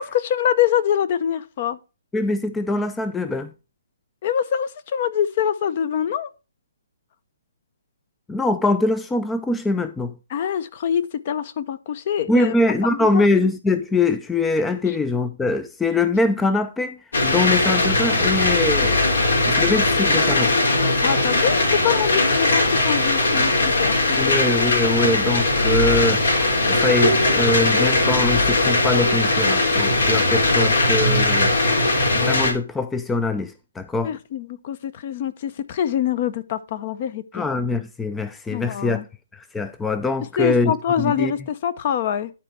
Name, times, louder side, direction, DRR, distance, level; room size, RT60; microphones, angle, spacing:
voice 1, 0.0-1.8 4.2-6.3 10.3-12.5 12.9-13.2 21.0-24.3 34.0-37.5 38.5-39.0 40.4-42.3, left 9 dB, 40° left, 0.7 m, -24 dB
voice 2, 2.1-3.5 8.3-10.1 12.3-17.0 17.2-19.0 19.5-20.5 24.2-26.4 26.7-31.5 32.2-34.1 37.3-39.0 39.3-41.3, left 2 dB, 5° left, 0.4 m, -23 dB
sound 1, 17.1-32.5, left 2 dB, 75° left, 3.3 m, -19 dB
11.0 x 4.3 x 4.6 m
hypercardioid pair, 150°, 0 cm